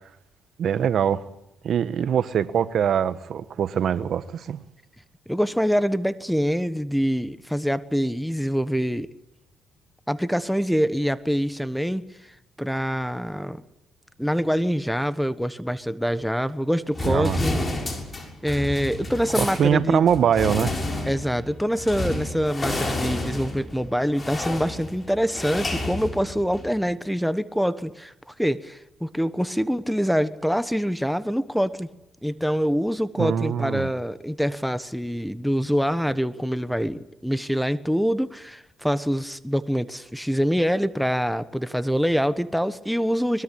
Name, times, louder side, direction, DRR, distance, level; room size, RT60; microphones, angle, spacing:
voice 1, 0.6-1.2 1.6-4.6 17.0-17.4 19.4-20.7 33.2-33.9, right 8 dB, 65° right, 1.3 m, -23 dB
voice 2, 5.3-9.1 10.1-12.1 12.6-13.6 14.2-17.6 18.4-20.0 21.1-31.9 32.2-43.4, equal, ahead, 1.2 m, -25 dB
sound 1, 16.9-26.8, left 2 dB, 25° left, 6.8 m, -30 dB
23.0 x 21.5 x 8.6 m
cardioid pair, 90°, 0 cm